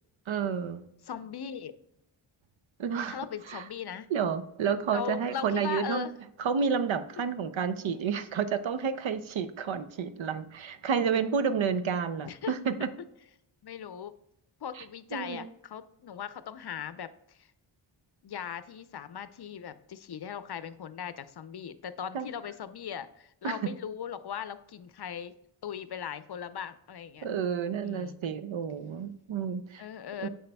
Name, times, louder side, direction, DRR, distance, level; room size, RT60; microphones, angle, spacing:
voice 1, 0.3-0.8 2.8-3.2 3.5-3.7 4.1-6.1 6.4-12.9 14.8-14.9 15.1-15.5 22.1-22.3 23.4-23.6 27.2-29.8 30.2-30.3, right 6 dB, 65° right, 12 dB, 0.7 m, -30 dB
voice 2, 1.1-1.7 3.1-4.1 4.9-6.1 12.2-12.5 13.6-14.1 14.6-17.5 18.2-25.3 25.6-27.3 27.8-28.2 29.8-30.3, left 8 dB, 55° left, 13 dB, 0.6 m, -39 dB
7.8 x 6.5 x 2.2 m, 0.81 s
cardioid pair, 45°, 49 cm